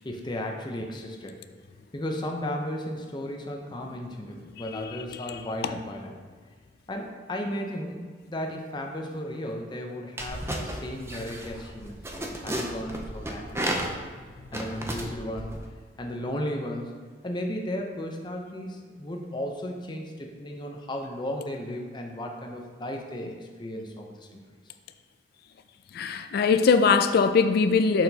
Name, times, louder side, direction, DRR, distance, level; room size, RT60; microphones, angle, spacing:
voice 1, 0.0-1.4 1.9-6.1 6.9-14.0 14.5-15.6 16.0-16.9 17.2-24.4, left 1 dB, 25° left, 2 dB, 0.7 m, -35 dB
sound 1, 10.2-15.7, right 1 dB, 15° right, 0.5 m, -34 dB
voice 2, 25.9-28.0, left 5 dB, 60° left, 10 dB, 0.3 m, -21 dB
6.7 x 5.9 x 2.8 m, 1.5 s
head